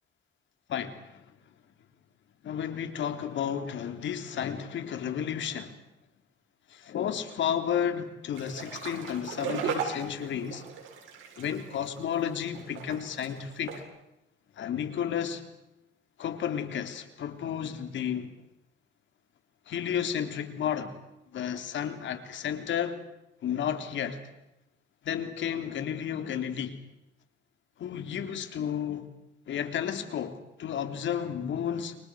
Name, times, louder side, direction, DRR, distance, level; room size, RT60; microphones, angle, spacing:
voice 1, 0.7-1.2 2.4-5.8 6.7-10.7 11.4-13.8 14.6-15.4 16.2-18.3 19.7-21.0 21.3-23.0 23.4-24.3 25.0-26.8 27.8-29.1 29.5-32.0, left 8 dB, 70° left, 7 dB, 3.6 m, -32 dB
sound 1, 8.4-13.8, right 7 dB, 80° right, 7.3 m, -37 dB
29.5 x 24.5 x 6.5 m, 0.87 s
cardioid pair, 90°, 20 cm